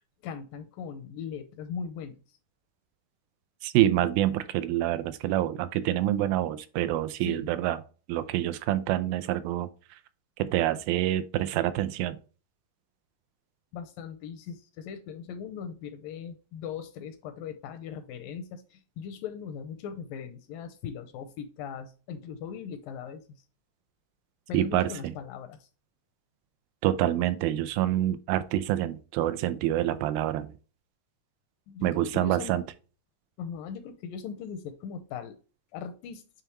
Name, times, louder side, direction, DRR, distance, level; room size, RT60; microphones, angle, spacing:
voice 1, 0.2-2.4 7.2-7.5 13.7-23.4 24.5-25.7 31.7-32.5 33.4-35.4 35.7-36.2, left 7 dB, 80° left, 2.1 m, -39 dB
voice 2, 3.6-7.8 8.1-9.7 10.4-12.2 24.5-24.9 26.8-30.5 31.8-32.6, right 13 dB, 80° right, 2.3 m, -26 dB
9.1 x 3.4 x 3.0 m
omnidirectional pair, 4.3 m